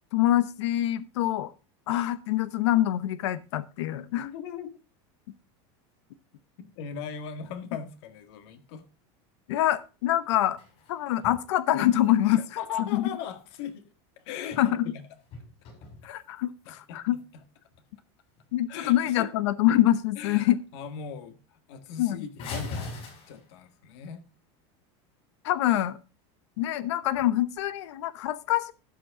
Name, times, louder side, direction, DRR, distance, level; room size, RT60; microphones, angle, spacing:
voice 1, 0.1-1.5 1.9-4.3 9.5-10.6 10.9-12.4 12.9-13.0 14.6-14.8 16.0-17.2 18.5-20.6 22.0-22.2 25.4-26.0 26.6-28.7, left 13 dB, 85° left, 0.8 m, -25 dB
voice 2, 4.1-4.8 6.6-8.8 12.2-13.8 14.2-15.1 16.7-17.4 18.7-19.3 20.2-22.9 23.3-24.2, left 7 dB, 70° left, 1.8 m, -39 dB
sound 1, 10.2-11.5 11.7-13.7 14.3-14.9 15.2-16.6 17.2-17.3 17.7-17.9 18.3-18.5 18.7-19.2 19.6-20.1 20.4-20.5 20.8-20.9 21.2-21.3 22.4-23.8 27.0-27.7, left 3 dB, 45° left, 6.4 m, -42 dB
12.5 x 8.9 x 3.6 m
supercardioid pair, 150°, 15 cm